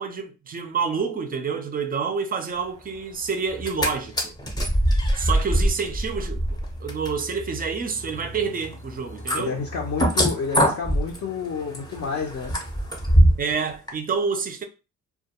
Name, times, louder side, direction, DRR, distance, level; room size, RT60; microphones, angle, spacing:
voice 1, 0.0-4.3 5.1-9.6 13.4-14.7, right 5 dB, 30° right, 0.5 m, -28 dB
sound 1, 3.5-3.9 4.2-13.5 13.9-14.0, equal, 15° left, 0.7 m, -23 dB
voice 2, 9.4-12.5, left 5 dB, 50° left, 0.6 m, -29 dB
2.2 x 2.2 x 2.8 m
cardioid pair, 90°, 30 cm